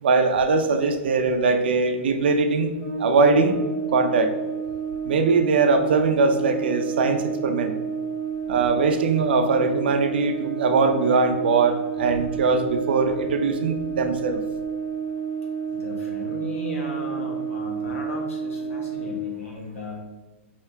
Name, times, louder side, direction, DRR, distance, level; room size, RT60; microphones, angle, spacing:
voice 1, 0.0-2.7 3.0-3.6 3.9-4.3 5.1-7.7 8.5-14.4, right 4 dB, 50° right, 7 dB, 0.5 m, -21 dB
Brass instrument, 2.8-19.2, right 6 dB, ahead, 1.1 m, -30 dB
voice 2, 15.7-20.0, left 1 dB, 80° left, 0 dB, 1.5 m, -36 dB
5.5 x 2.8 x 3.3 m, 1.2 s
hypercardioid pair, 180°, 7 cm